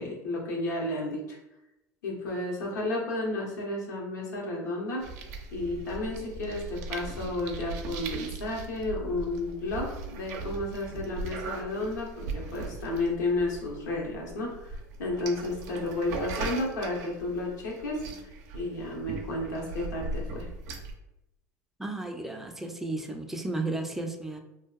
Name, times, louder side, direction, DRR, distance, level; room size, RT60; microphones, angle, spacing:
voice 1, 0.0-1.4 2.0-5.0 5.5-20.5, left 2 dB, 85° left, -2 dB, 0.7 m, -32 dB
sound 1, 5.0-20.9, right 3 dB, 70° right, 0.4 m, -39 dB
voice 2, 21.8-24.4, right 2 dB, 5° right, 4 dB, 0.3 m, -33 dB
2.6 x 2.2 x 2.3 m, 0.90 s
hypercardioid pair, 85°, 9 cm